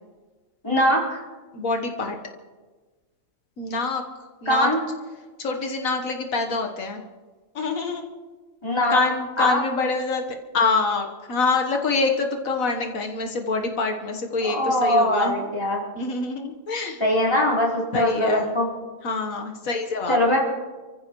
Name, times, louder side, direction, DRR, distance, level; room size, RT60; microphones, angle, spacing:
voice 1, 0.6-1.2 4.5-4.8 8.6-9.0 9.4-9.6 14.4-15.8 17.0-18.7 20.1-20.4, left 1 dB, 20° left, -4 dB, 4.4 m, -21 dB
voice 2, 1.5-2.2 3.6-4.0 4.4-4.7 5.4-7.0 7.6-8.1 8.9-10.2 10.5-15.4 16.0-17.0 17.9-18.5 19.0-20.2, left 3 dB, 85° left, 4 dB, 1.7 m, -25 dB
29.0 x 15.0 x 3.1 m, 1.3 s
omnidirectional pair, 1.4 m